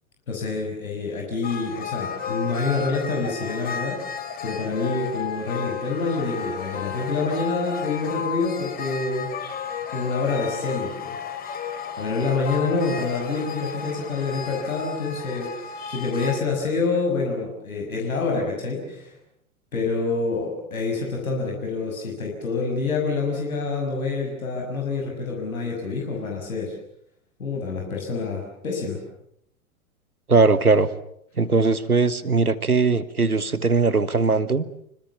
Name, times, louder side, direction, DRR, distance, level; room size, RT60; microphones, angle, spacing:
voice 1, 0.3-4.0 4.4-9.3 9.9-11.2 12.0-19.2 19.7-26.7 27.4-29.0, left 4 dB, 70° left, 0 dB, 6.4 m, -27 dB
sound 1, 1.4-16.4, left 7 dB, 20° left, 2.9 m, -33 dB
voice 2, 30.3-30.9 31.4-34.6, right 4 dB, 85° right, 14 dB, 1.6 m, -20 dB
27.0 x 25.0 x 7.1 m, 0.72 s
figure-of-eight pair, 100°, 43 cm